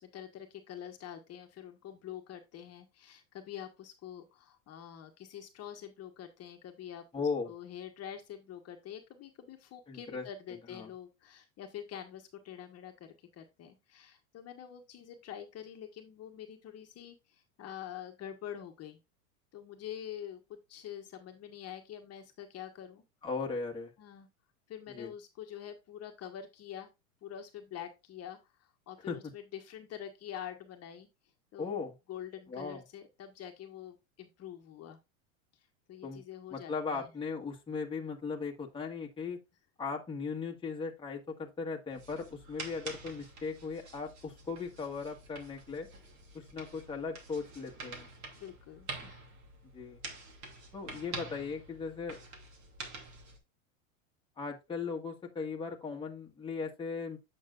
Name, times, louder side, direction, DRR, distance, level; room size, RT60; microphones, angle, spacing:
voice 1, 0.0-19.0 19.5-20.4 20.7-23.0 24.0-24.3 24.7-26.9 27.2-31.1 31.5-31.7 32.1-35.0 35.5-37.1 48.3-49.3, left 10 dB, 35° left, 1.3 m, -46 dB
voice 2, 7.1-7.5 9.9-10.3 10.7-10.9 23.2-23.9 24.9-25.1 29.1-29.2 31.6-31.9 32.5-32.8 36.0-36.2 36.5-39.4 39.8-45.9 46.3-48.1 49.7-50.0 50.7-52.2 54.4-57.2, left 5 dB, 10° left, 1.5 m, -38 dB
sound 1, 41.9-53.4, right 3 dB, 40° right, 2.6 m, -47 dB
8.6 x 6.5 x 2.4 m
hypercardioid pair, 110°, 42 cm